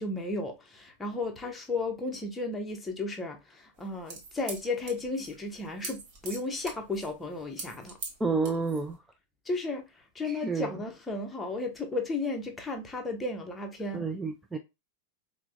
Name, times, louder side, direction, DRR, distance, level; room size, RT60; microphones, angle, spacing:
voice 1, 0.0-8.0 9.5-9.8 10.1-14.0, left 2 dB, 10° left, 0.7 m, -34 dB
sound 1, 3.8-8.9, right 4 dB, 45° right, 1.0 m, -43 dB
voice 2, 8.2-9.0 10.2-10.7 13.9-14.6, right 4 dB, 10° right, 0.3 m, -30 dB
4.4 x 2.1 x 2.4 m
figure-of-eight pair, 90°, 0 cm